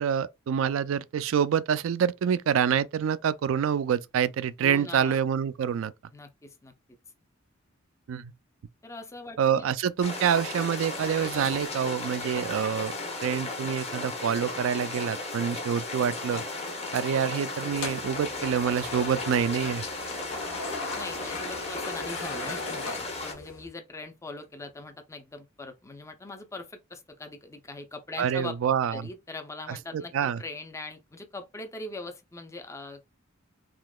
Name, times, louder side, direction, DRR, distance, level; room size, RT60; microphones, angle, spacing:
voice 1, 0.0-5.9 8.1-8.3 9.4-12.9 13.2-16.4 16.9-19.8 28.2-29.1 29.7-30.4, right 8 dB, 70° right, 0.3 m, -27 dB
voice 2, 4.6-5.2 6.1-6.7 8.8-9.7 20.9-28.6 28.9-33.1, left 2 dB, 15° left, 0.4 m, -41 dB
sound 1, 10.0-23.3, left 2 dB, 30° left, 0.8 m, -35 dB
sound 2, 17.7-23.7, left 3 dB, 85° left, 0.9 m, -39 dB
3.7 x 2.8 x 2.2 m
head